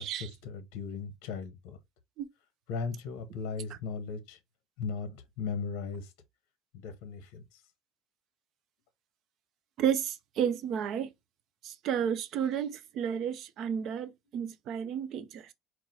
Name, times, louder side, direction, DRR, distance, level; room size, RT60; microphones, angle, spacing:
voice 1, 0.4-1.8 2.7-4.4 4.8-6.1 6.8-7.4, left 5 dB, 65° left, 0.9 m, -37 dB
voice 2, 9.8-11.1 11.6-15.5, right 8 dB, 40° right, 0.5 m, -32 dB
4.7 x 2.1 x 4.0 m
cardioid pair, 165°, 0 cm